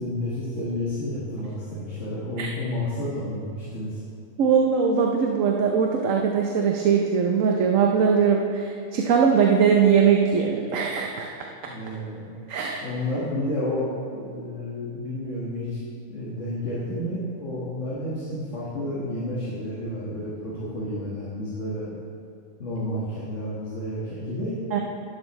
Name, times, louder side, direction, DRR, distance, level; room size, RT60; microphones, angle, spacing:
voice 1, 0.0-4.0 11.7-12.3 12.8-21.9 22.6-24.6, left 1 dB, 65° left, -8 dB, 2.1 m, -31 dB
voice 2, 4.4-11.3 12.5-12.9 24.7-24.8, right 6 dB, 75° right, 1 dB, 1.1 m, -21 dB
12.0 x 10.5 x 3.2 m, 2.5 s
omnidirectional pair, 1.4 m